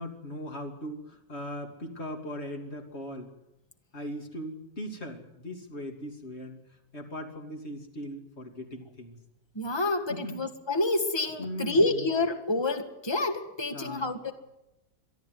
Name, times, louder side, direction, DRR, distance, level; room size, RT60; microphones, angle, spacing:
voice 1, 0.0-3.3 3.9-6.6 6.9-9.1 10.1-10.4 11.4-12.1 13.7-14.1, equal, 40° left, 3.1 m, -39 dB
voice 2, 9.5-14.3, left 2 dB, 15° left, 1.7 m, -28 dB
23.5 x 13.5 x 9.5 m
omnidirectional pair, 1.7 m